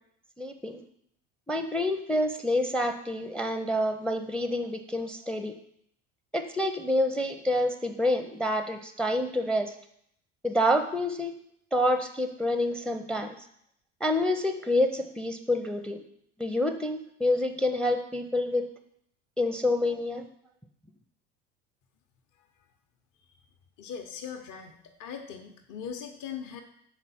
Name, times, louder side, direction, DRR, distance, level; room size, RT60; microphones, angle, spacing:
voice 1, 0.4-0.8 1.5-5.5 6.3-9.7 10.4-11.3 11.7-13.4 14.0-16.0 16.4-18.7 19.4-20.3, left 1 dB, ahead, 7 dB, 0.5 m, -27 dB
voice 2, 23.8-26.6, left 7 dB, 55° left, 4 dB, 0.8 m, -40 dB
6.1 x 4.0 x 4.2 m, 0.71 s
hypercardioid pair, 65°, 37 cm